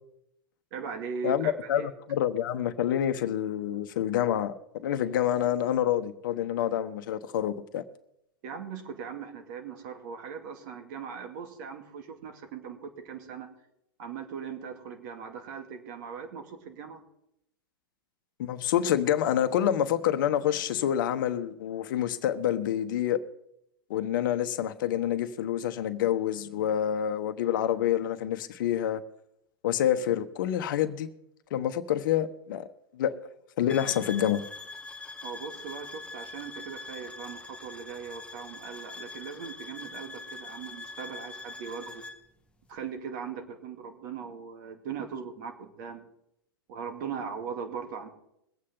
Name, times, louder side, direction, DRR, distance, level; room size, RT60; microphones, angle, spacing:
voice 1, 0.7-1.9 8.4-13.5 14.0-17.0 35.2-42.0 42.7-46.0 46.7-48.1, right 6 dB, 50° right, 2.4 m, -39 dB
voice 2, 1.2-7.8 18.4-23.2 23.9-29.0 29.6-31.1 31.5-32.7 32.9-33.2 33.6-34.4, left 10 dB, 60° left, 1.0 m, -27 dB
sound 1, 33.7-42.2, left 3 dB, 10° left, 1.2 m, -43 dB
22.0 x 8.5 x 3.8 m
hypercardioid pair, 105°, 12 cm